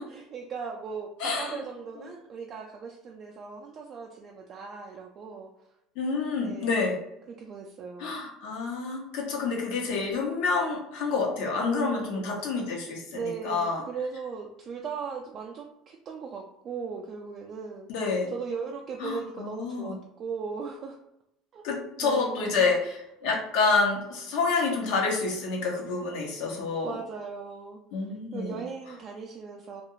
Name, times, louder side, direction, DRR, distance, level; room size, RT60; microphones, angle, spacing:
voice 1, 0.0-5.5 6.4-6.8 7.4-8.2 11.6-12.3 13.1-21.0 21.5-21.6 22.0-22.7 26.8-28.1 28.3-29.8, right 5 dB, 45° right, 0 dB, 0.3 m, -38 dB
voice 2, 1.2-1.6 6.0-7.0 8.0-13.8 17.9-18.3 19.0-20.0 21.6-27.0 27.9-28.6, left 4 dB, 75° left, -1 dB, 0.9 m, -28 dB
2.4 x 2.3 x 3.0 m, 0.84 s
supercardioid pair, 110°, 0 cm